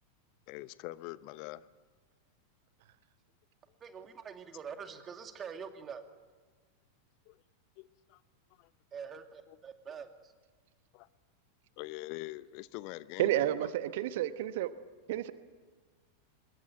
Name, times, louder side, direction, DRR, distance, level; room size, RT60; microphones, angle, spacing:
voice 1, 0.5-1.7 7.3-7.4 7.8-8.2 8.6-8.7 9.5-9.6 10.9-11.1 11.8-13.7, left 18 dB, 45° left, 17 dB, 0.7 m, -44 dB
voice 2, 3.8-6.0 8.9-10.3, right 6 dB, 25° right, 7 dB, 2.5 m, -45 dB
voice 3, 13.2-14.7 15.1-15.3, right 13 dB, 55° right, 13 dB, 1.1 m, -30 dB
25.5 x 22.5 x 9.1 m, 1.5 s
figure-of-eight pair, 90°, 0 cm